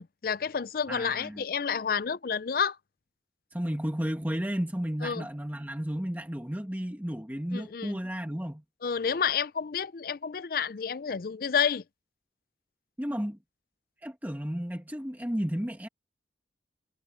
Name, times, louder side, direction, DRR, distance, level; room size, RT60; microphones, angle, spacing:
voice 1, 0.0-2.8 5.0-5.3 7.5-8.0 8.8-11.8, left 6 dB, 55° left, 0.5 m, -30 dB
voice 2, 0.9-1.4 3.5-8.6 13.0-13.4 14.0-15.9, equal, 10° right, 1.9 m, -33 dB
head